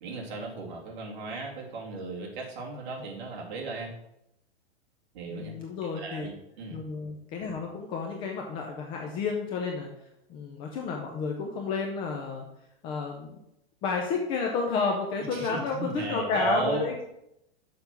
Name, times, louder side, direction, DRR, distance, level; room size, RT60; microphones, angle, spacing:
voice 1, 0.0-3.9 5.1-5.5 6.0-6.8 15.3-17.0, right 3 dB, 45° right, -1 dB, 2.4 m, -35 dB
voice 2, 5.3-6.3 6.7-9.9 10.3-12.4 12.8-13.4 13.8-17.0, left 4 dB, 15° left, 2 dB, 0.5 m, -31 dB
6.9 x 5.4 x 5.8 m, 0.81 s
hypercardioid pair, 160°, 32 cm